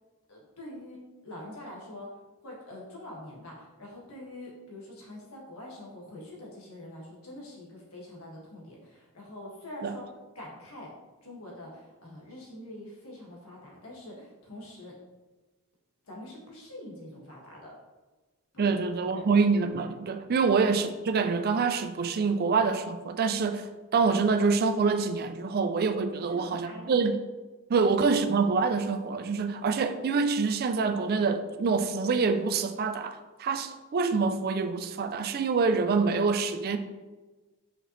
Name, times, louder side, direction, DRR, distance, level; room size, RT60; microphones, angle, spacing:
voice 1, 0.3-2.1 2.4-10.1 10.4-10.9 11.2-14.9 16.0-17.7 18.5-18.7 19.1-19.3 20.4-20.5 26.2-27.1 27.8-27.9, left 1 dB, 75° left, 1.9 m, -45 dB
voice 2, 18.6-27.2 27.7-36.8, right 4 dB, 45° right, 0.4 m, -26 dB
5.7 x 5.5 x 3.2 m
head